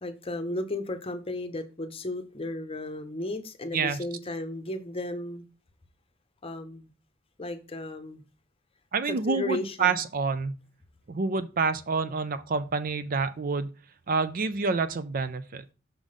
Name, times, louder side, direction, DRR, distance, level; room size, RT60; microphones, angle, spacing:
voice 1, 0.0-5.5 6.4-6.9 7.4-8.2 9.1-9.9, left 1 dB, 30° left, 0.8 m, -34 dB
voice 2, 8.9-10.6 11.1-13.7 14.1-15.7, right 4 dB, 45° right, 0.5 m, -28 dB
6.2 x 3.8 x 5.0 m
head